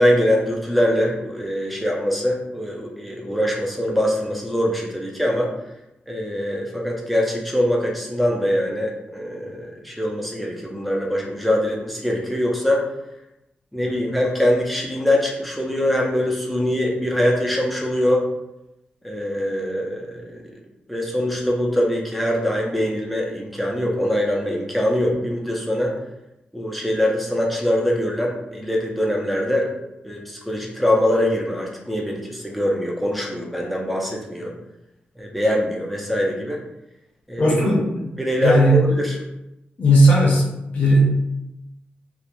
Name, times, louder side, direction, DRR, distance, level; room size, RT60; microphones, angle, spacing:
voice 1, 0.0-5.5 6.1-12.8 13.7-18.3 19.0-20.4 20.9-26.0 26.5-29.7 30.0-34.5 35.2-36.6 37.3-37.8 38.2-39.1, equal, ahead, -1 dB, 0.4 m, -23 dB
voice 2, 37.4-38.1 38.4-38.8 39.8-40.5 40.7-41.1, right 1 dB, 50° left, -3 dB, 0.6 m, -16 dB
2.4 x 2.1 x 2.9 m, 0.90 s
wide cardioid pair, 145°, 3 cm